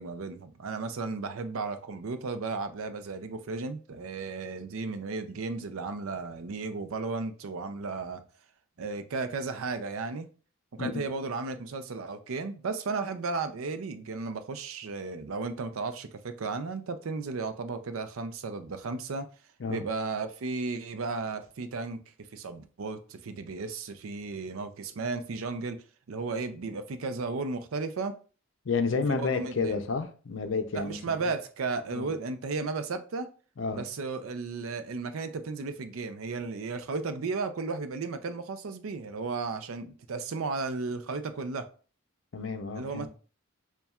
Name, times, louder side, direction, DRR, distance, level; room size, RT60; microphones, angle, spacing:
voice 1, 0.0-8.2 8.8-10.3 10.7-19.3 19.7-22.0 22.3-25.8 26.1-28.1 28.9-29.8 30.7-33.3 33.7-41.6 42.7-43.1, right 4 dB, 85° right, 0.5 m, -34 dB
voice 2, 28.7-31.0 31.9-32.1 33.6-33.8 42.3-43.1, left 4 dB, 65° left, 0.5 m, -30 dB
6.9 x 2.3 x 2.3 m
head